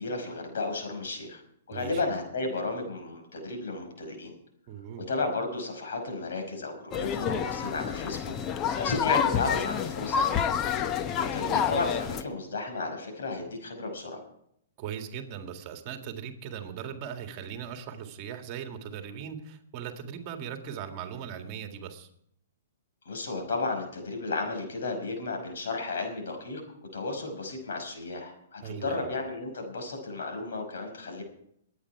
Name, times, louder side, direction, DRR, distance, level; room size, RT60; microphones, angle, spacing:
voice 1, 0.0-1.4 1.7-4.3 5.1-8.2 8.8-10.5 11.2-14.2 23.1-26.6 26.9-31.2, left 3 dB, 75° left, 4 dB, 5.3 m, -33 dB
voice 2, 1.7-2.0 4.7-5.1 14.8-22.1 28.6-29.1, right 8 dB, 40° right, 6 dB, 1.9 m, -39 dB
sound 1, 6.9-12.2, left 8 dB, 30° left, 0.8 m, -28 dB
21.5 x 9.2 x 4.7 m, 0.70 s
hypercardioid pair, 135°, 0 cm